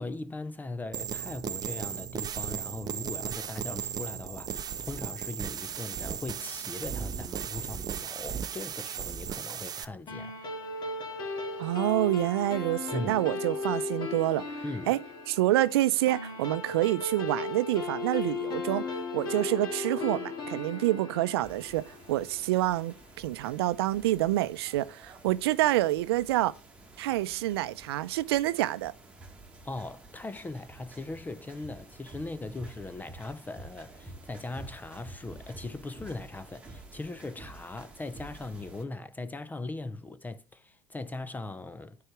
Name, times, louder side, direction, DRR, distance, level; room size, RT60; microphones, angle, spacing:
voice 1, 0.0-10.4 12.9-13.2 14.6-14.9 29.6-42.0, left 2 dB, 15° left, 0.5 m, -39 dB
sound 1, 0.9-9.8, right 8 dB, 30° right, 0.7 m, -36 dB
sound 2, 10.1-22.8, left 3 dB, 35° left, 2.2 m, -36 dB
voice 2, 11.6-14.4 14.9-15.0 15.3-18.8 19.1-26.5 27.0-28.9, right 15 dB, 80° right, 0.6 m, -27 dB
sound 3, 21.4-38.8, right 2 dB, 10° right, 1.6 m, -50 dB
9.3 x 4.8 x 4.7 m
supercardioid pair, 105°, 13 cm